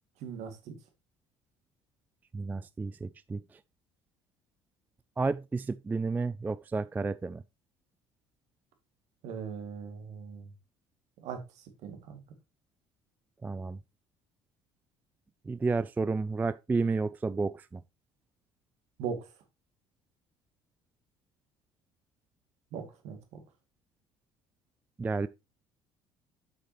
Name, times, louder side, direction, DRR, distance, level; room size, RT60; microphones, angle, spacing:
voice 1, 0.2-0.8 9.2-10.5 11.2-11.4 11.8-12.2 19.0-19.3 22.7-23.4, right 6 dB, 55° right, 2.2 m, -39 dB
voice 2, 2.3-3.4 5.2-7.4 13.4-13.8 15.5-17.8 25.0-25.3, right 4 dB, 10° right, 0.3 m, -31 dB
8.2 x 7.4 x 3.0 m
figure-of-eight pair, 55°, 14 cm